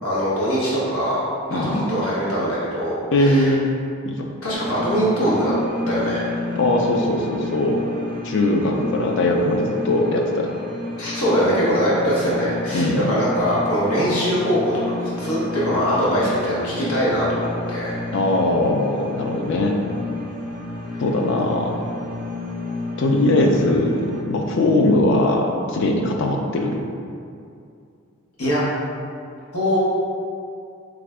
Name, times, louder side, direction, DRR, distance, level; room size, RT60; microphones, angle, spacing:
voice 1, 0.0-1.2 1.5-3.5 4.4-5.5 5.9-6.2 11.0-14.7 15.0-18.0 20.9-21.0 28.4-28.6 29.5-29.8, equal, 85° left, -8 dB, 1.1 m, -22 dB
voice 2, 1.5-1.9 3.1-3.7 4.0-4.3 6.6-7.8 8.2-10.5 12.7-13.1 18.1-19.8 21.0-21.8 23.0-26.8, left 1 dB, 55° left, 2 dB, 0.4 m, -20 dB
sound 1, 4.5-24.2, left 2 dB, 40° right, 0.4 m, -31 dB
3.5 x 2.5 x 3.3 m, 2.4 s
head